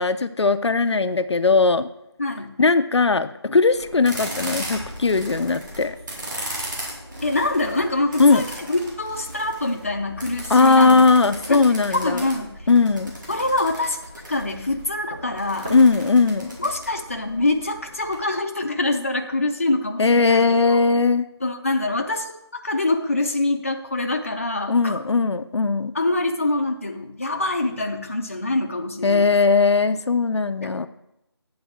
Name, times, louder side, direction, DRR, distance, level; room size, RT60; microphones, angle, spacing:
voice 1, 0.0-1.9 2.6-6.0 8.2-8.4 10.5-12.3 12.7-13.1 15.7-16.6 20.0-21.3 24.7-25.9 29.0-30.9, left 4 dB, 75° left, 10 dB, 0.5 m, -18 dB
voice 2, 2.2-2.5 7.2-11.1 11.5-11.6 11.9-12.7 13.3-14.0 14.3-15.7 16.6-20.8 21.4-22.3 22.6-25.0 25.9-29.3, left 2 dB, 30° left, 3 dB, 0.5 m, -25 dB
sound 1, 3.7-18.1, right 1 dB, 45° right, 2.5 m, -37 dB
sound 2, 14.0-19.0, right 1 dB, 15° right, 0.7 m, -44 dB
8.7 x 3.9 x 7.1 m, 0.85 s
figure-of-eight pair, 175°, 14 cm